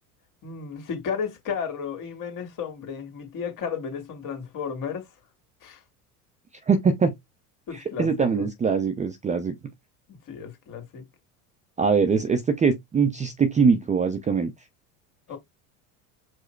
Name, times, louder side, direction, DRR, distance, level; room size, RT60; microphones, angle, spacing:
voice 1, 0.4-5.1 5.6-5.8 7.7-8.5 10.3-11.0 15.3-15.4, left 6 dB, 45° left, 2.0 m, -33 dB
voice 2, 6.7-7.1 8.0-9.5 11.8-14.5, right 5 dB, 15° right, 0.5 m, -22 dB
4.8 x 2.0 x 4.4 m
hypercardioid pair, 90°, 44 cm